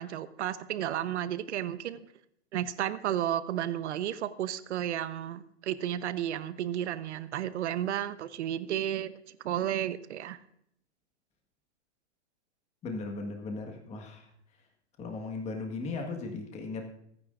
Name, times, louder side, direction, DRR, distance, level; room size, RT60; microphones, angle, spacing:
voice 1, 0.0-2.0 2.5-9.1 9.4-10.4, right 11 dB, 70° right, 1.0 m, -32 dB
voice 2, 12.8-14.3 15.0-16.8, left 3 dB, 20° left, 1.6 m, -37 dB
25.5 x 9.7 x 2.5 m
hypercardioid pair, 145°, 36 cm